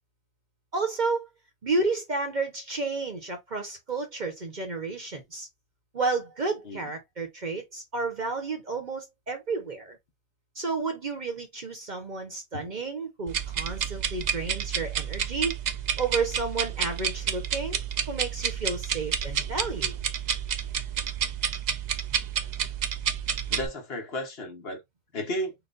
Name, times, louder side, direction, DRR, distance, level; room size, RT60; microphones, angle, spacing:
voice 1, 0.7-1.3 1.6-5.5 5.9-10.0 10.6-15.5 16.0-17.8 18.1-19.9, right 3 dB, 40° right, 0.9 m, -31 dB
sound 1, 13.3-23.7, right 8 dB, 65° right, 0.4 m, -30 dB
voice 2, 23.5-24.8 25.1-25.5, equal, 55° left, 1.2 m, -33 dB
4.0 x 2.1 x 3.8 m
omnidirectional pair, 1.3 m